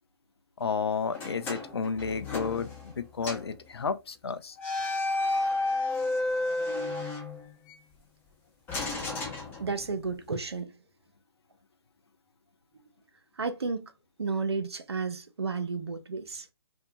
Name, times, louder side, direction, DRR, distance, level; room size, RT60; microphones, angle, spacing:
voice 1, 0.6-4.6, left 5 dB, 70° left, 0.4 m, -32 dB
sound 1, 1.1-3.0 3.2-3.6 4.6-7.8 8.7-10.1, left 2 dB, 15° left, 0.7 m, -32 dB
voice 2, 9.6-10.7 13.4-13.9 14.2-16.5, right 4 dB, 75° right, 0.6 m, -32 dB
2.7 x 2.1 x 2.6 m
figure-of-eight pair, 135°, 14 cm